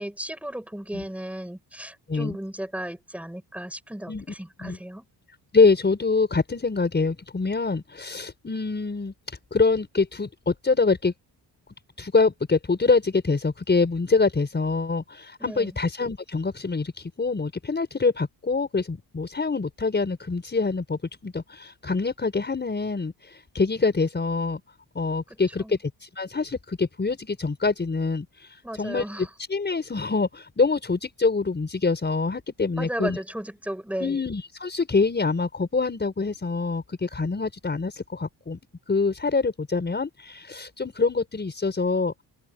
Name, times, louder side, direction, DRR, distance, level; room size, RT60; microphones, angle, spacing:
voice 1, 0.0-5.0 15.4-15.8 25.6-25.7 28.6-29.3 32.8-34.2, right 1 dB, 5° right, 7.1 m, -35 dB
voice 2, 5.5-11.1 12.0-24.6 24.9-33.2 34.0-38.6 38.9-42.2, left 4 dB, 25° left, 5.8 m, -25 dB
cardioid pair, 120°, 42 cm